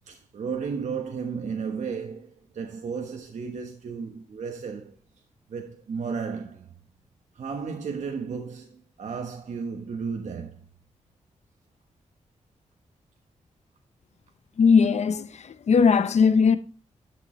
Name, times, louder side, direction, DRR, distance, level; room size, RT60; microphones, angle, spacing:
voice 1, 0.1-5.0 5.5-6.7 7.3-10.7, right 5 dB, 70° right, 1.1 m, -34 dB
voice 2, 14.6-16.6, left 5 dB, 60° left, 0.7 m, -19 dB
11.5 x 6.4 x 3.1 m
wide cardioid pair, 115°, 13 cm